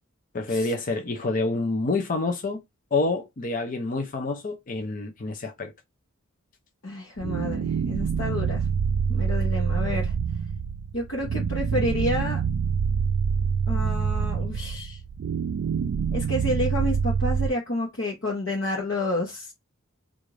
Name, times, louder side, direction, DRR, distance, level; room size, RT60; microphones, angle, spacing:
voice 1, 0.3-2.6 2.9-5.7, left 3 dB, 40° left, 0.5 m, -27 dB
voice 2, 6.8-8.6 9.1-10.1 10.9-12.4 13.7-15.0 16.1-19.5, left 1 dB, 60° left, 0.9 m, -29 dB
sound 1, 7.2-17.5, right 6 dB, 60° right, 0.3 m, -26 dB
3.7 x 2.5 x 3.1 m
head